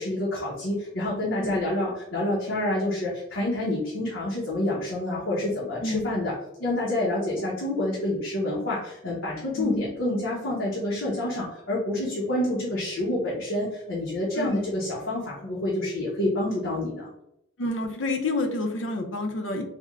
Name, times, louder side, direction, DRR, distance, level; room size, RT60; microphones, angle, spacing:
voice 1, 0.0-6.3 6.6-17.1, left 1 dB, 85° left, -7 dB, 0.9 m, -28 dB
voice 2, 5.8-6.2 9.6-9.9 14.3-14.6 17.6-19.6, left 2 dB, 70° left, 5 dB, 0.6 m, -29 dB
3.4 x 2.1 x 3.6 m, 0.81 s
head